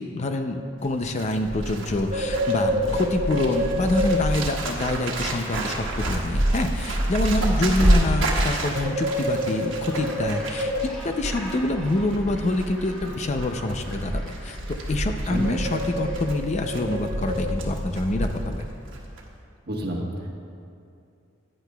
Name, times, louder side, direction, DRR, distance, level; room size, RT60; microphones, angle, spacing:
voice 1, 0.0-10.7 11.0-18.7, left 2 dB, 35° left, 6 dB, 0.5 m, -26 dB
Bird, 0.8-18.7 18.9-19.2, right 1 dB, 70° right, 1.3 m, -27 dB
Gull seagull, 9.5-16.3, equal, 5° left, 2.0 m, -44 dB
voice 2, 19.7-20.3, equal, 50° right, -1 dB, 1.3 m, -29 dB
15.0 x 9.9 x 2.3 m, 2.5 s
head